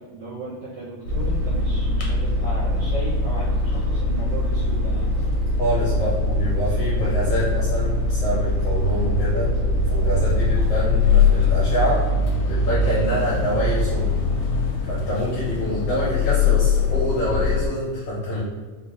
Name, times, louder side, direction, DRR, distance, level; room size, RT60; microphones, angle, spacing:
voice 1, 0.0-5.2, right 2 dB, 75° right, -7 dB, 1.3 m, -35 dB
sound 1, 1.1-17.7, left 3 dB, 85° left, 2.0 m, -22 dB
sound 2, 1.1-14.7, right 1 dB, 90° right, 2.1 m, -33 dB
voice 2, 5.6-12.0 12.5-14.1 14.9-18.4, right 1 dB, 70° left, -7 dB, 1.4 m, -25 dB
4.9 x 2.1 x 2.9 m, 1.4 s
omnidirectional pair, 3.4 m